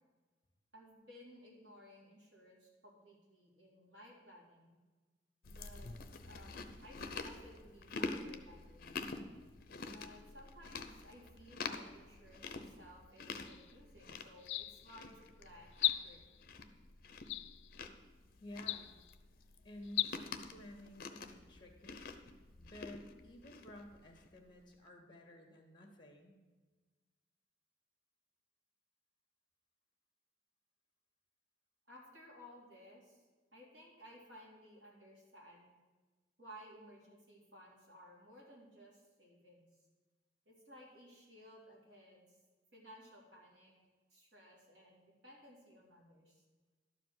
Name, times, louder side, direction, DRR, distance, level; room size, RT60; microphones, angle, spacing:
voice 1, 0.7-4.7 5.5-5.9 6.2-9.0 9.9-16.5 31.9-33.2 33.5-35.7 36.4-39.7 40.5-42.3 42.7-43.7 44.1-46.4, equal, 70° right, -4 dB, 3.6 m, -58 dB
Chewing mastication, 5.4-24.4, left 4 dB, 55° left, 0.7 m, -47 dB
sound 1, 13.5-13.7 14.4-15.0 15.7-16.4 17.3-17.8 18.6-19.1 19.8-20.1, left 15 dB, 80° left, 0.4 m, -37 dB
voice 2, 18.4-18.9 19.6-22.0 22.6-26.4, left 1 dB, 25° left, 3 dB, 1.8 m, -53 dB
12.0 x 5.0 x 7.7 m, 1.3 s
head